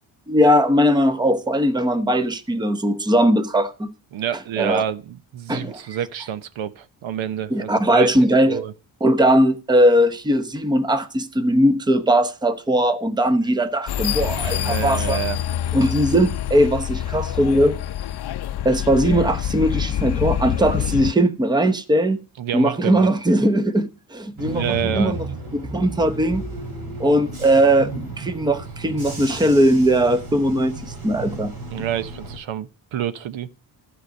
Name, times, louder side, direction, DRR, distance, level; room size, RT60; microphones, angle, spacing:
voice 1, 0.3-3.9 4.6-4.8 5.5-5.8 7.5-8.6 9.0-15.2 15.7-17.8 18.6-22.2 22.5-25.2 25.5-26.4 27.0-31.5, right 1 dB, 10° right, 0.7 m, -19 dB
voice 2, 4.1-8.1 8.5-8.7 14.4-15.4 22.4-23.1 24.5-25.2 31.7-33.5, right 10 dB, 80° right, 0.9 m, -28 dB
sound 1, 13.9-21.1, left 11 dB, 60° left, 0.6 m, -26 dB
Bus / Engine, 24.4-32.4, right 2 dB, 55° right, 3.9 m, -33 dB
14.0 x 5.1 x 6.3 m
wide cardioid pair, 170°, 46 cm